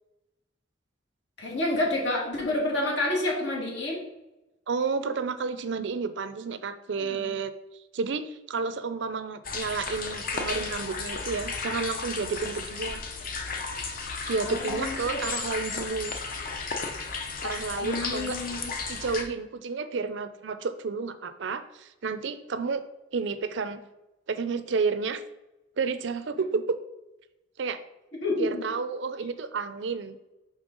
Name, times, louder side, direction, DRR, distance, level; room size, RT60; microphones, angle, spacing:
voice 1, 1.4-4.0 7.0-7.4 14.4-15.2 17.8-18.7 28.2-28.7, left 2 dB, 70° left, -2 dB, 1.9 m, -29 dB
voice 2, 4.7-7.5 7.9-13.0 14.3-16.1 17.4-18.4 18.9-22.8 23.1-23.8 24.3-25.2 25.8-26.8 27.6-27.8 28.4-30.2, right 4 dB, 70° right, 11 dB, 0.5 m, -31 dB
sound 1, 9.4-19.2, left 4 dB, 45° left, 0.7 m, -34 dB
5.3 x 3.7 x 5.2 m, 0.96 s
head